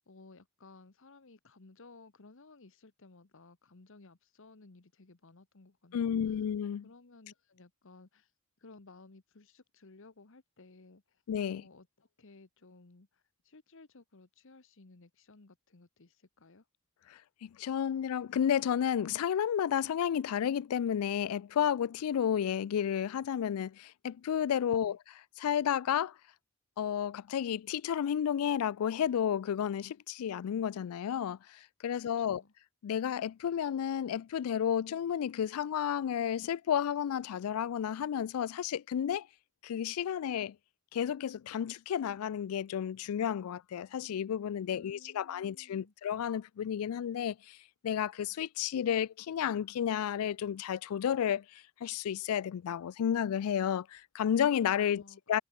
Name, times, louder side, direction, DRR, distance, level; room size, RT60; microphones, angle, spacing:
voice 1, 0.0-6.4 6.8-8.3 8.6-11.2 11.6-16.6 24.7-25.0 32.2-32.5 44.7-45.9 54.9-55.4, left 3 dB, 60° left, 1.2 m, -57 dB
voice 2, 5.9-6.9 11.3-11.6 17.1-25.0 25.4-26.1 26.8-32.4 32.8-39.3 39.6-40.6 40.9-47.6 47.8-55.0 55.3-55.4, left 9 dB, 80° left, 0.3 m, -32 dB
head